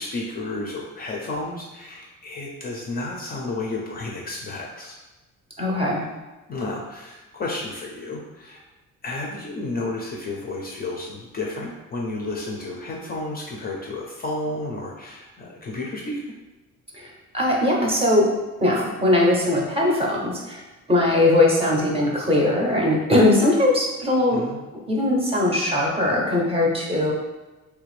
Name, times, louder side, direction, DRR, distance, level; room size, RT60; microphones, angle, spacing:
voice 1, 0.0-5.0 6.5-8.6 9.0-16.2 24.3-24.6, left 2 dB, 30° left, -2 dB, 0.4 m, -32 dB
voice 2, 5.6-6.1 16.9-18.3 18.6-20.6 20.9-24.4 24.9-27.1, left 1 dB, 20° right, -3 dB, 0.5 m, -20 dB
3.2 x 2.4 x 3.1 m, 1.1 s
cardioid pair, 150°, 31 cm